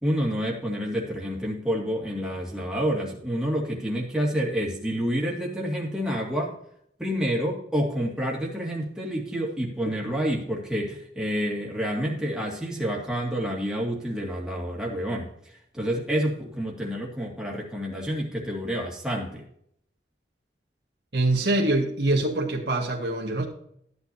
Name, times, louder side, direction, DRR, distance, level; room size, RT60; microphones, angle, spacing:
voice 1, 0.0-6.5 7.0-15.3 15.7-19.4, equal, 5° right, -2 dB, 2.1 m, -28 dB
voice 2, 21.1-23.4, right 2 dB, 70° right, -2 dB, 1.8 m, -24 dB
13.5 x 8.2 x 2.8 m, 0.69 s
head